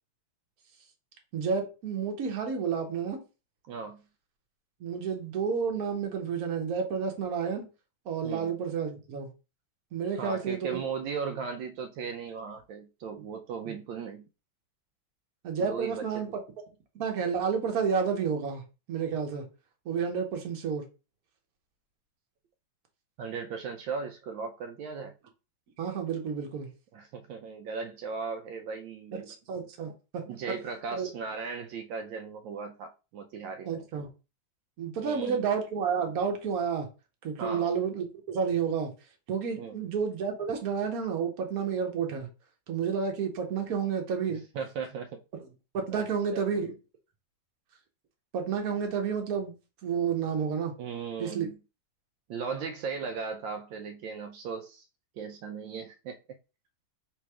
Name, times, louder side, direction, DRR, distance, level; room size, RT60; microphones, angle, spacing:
voice 1, 1.3-3.2 4.8-7.6 8.1-9.3 9.9-10.8 13.7-13.8 15.4-16.3 16.9-18.6 18.9-19.5 19.8-20.8 25.8-26.7 29.1-30.2 30.9-31.1 33.6-34.1 34.8-36.9 37.2-38.9 39.3-42.3 42.7-44.4 45.7-46.7 48.3-49.5 49.8-50.7 51.2-51.5, right 6 dB, 55° right, 1.3 m, -30 dB
voice 2, 3.7-4.0 8.2-8.5 10.2-14.2 15.6-16.2 23.2-25.1 26.9-29.3 30.3-33.8 35.0-35.5 37.4-37.7 39.6-39.8 44.3-45.2 45.9-46.5 50.8-51.6 52.3-54.8 55.1-56.1, right 5 dB, 80° right, 1.3 m, -37 dB
3.3 x 3.1 x 4.7 m
omnidirectional pair, 2.1 m